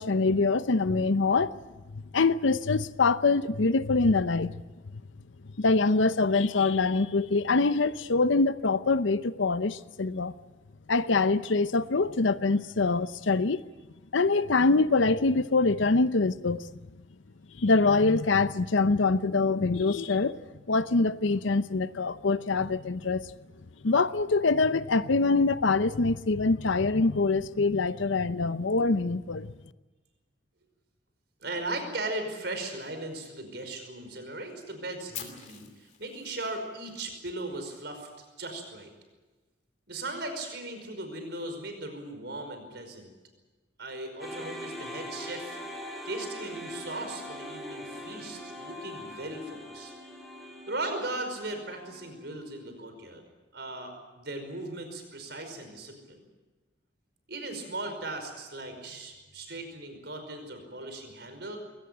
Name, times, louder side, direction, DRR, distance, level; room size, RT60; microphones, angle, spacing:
voice 1, 0.0-1.6 1.9-4.6 5.6-10.3 10.9-13.6 14.1-16.7 17.6-20.4 20.7-23.3 23.8-29.5, left 3 dB, 90° left, 0.8 m, -24 dB
voice 2, 31.4-38.9 39.9-43.1 43.8-45.6 46.1-49.9 50.7-53.2 53.5-56.2 57.3-61.6, right 2 dB, 65° right, 5.3 m, -38 dB
Fire, 35.1-37.2, left 9 dB, 40° left, 2.8 m, -44 dB
sound 1, 44.2-52.5, left 1 dB, ahead, 3.9 m, -42 dB
22.0 x 18.0 x 9.1 m
head